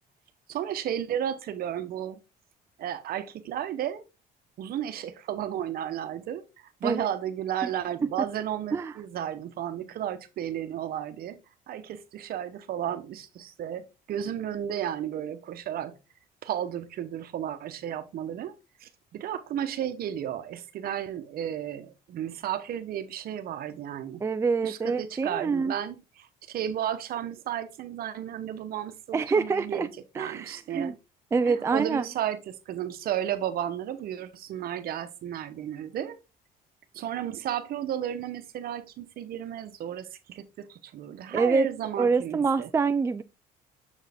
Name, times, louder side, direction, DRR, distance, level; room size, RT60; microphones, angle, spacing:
voice 1, 0.5-2.2 2.8-4.0 4.6-6.4 6.8-11.4 11.7-16.0 16.4-18.5 18.8-24.3 24.6-31.0 31.4-36.2 36.9-42.7, right 10 dB, 60° right, 0.9 m, -33 dB
voice 2, 24.2-25.7 29.1-29.9 30.2-30.9 31.3-32.0 41.3-41.7 42.0-43.2, right 4 dB, 15° right, 0.3 m, -26 dB
7.0 x 4.6 x 3.4 m
cardioid pair, 110°, 17 cm